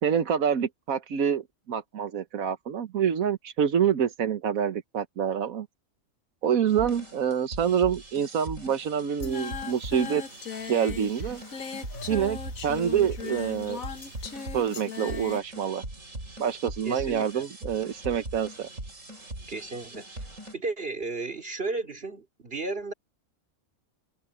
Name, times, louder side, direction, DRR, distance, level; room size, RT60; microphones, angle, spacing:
voice 1, 0.0-5.7 6.4-10.2 10.7-11.4 12.1-12.4 12.6-13.8 14.5-15.8 16.4-18.7, right 8 dB, 90° right, 1.5 m, -26 dB
sound 1, 6.7-20.5, right 1 dB, 65° right, 6.0 m, -41 dB
Singing, 9.2-15.4, left 7 dB, 85° left, 1.8 m, -38 dB
voice 2, 16.8-17.4 19.5-20.1 20.5-22.9, right 3 dB, 45° right, 3.4 m, -34 dB
omnidirectional pair, 1.4 m